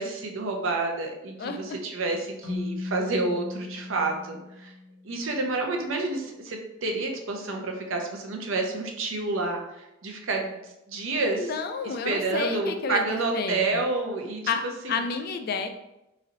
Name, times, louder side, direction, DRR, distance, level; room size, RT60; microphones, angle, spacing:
voice 1, 0.0-4.7 5.0-10.6 10.9-11.5 11.8-14.4 14.8-15.0, right 3 dB, 65° right, 2 dB, 0.7 m, -29 dB
voice 2, 1.4-1.8 11.4-13.0 13.3-13.8 14.5-14.6 14.9-15.7, left 5 dB, 45° left, 7 dB, 0.3 m, -30 dB
Keyboard (musical), 2.4-5.2, left 2 dB, 65° left, 1.0 m, -36 dB
3.1 x 2.7 x 3.8 m, 0.89 s
head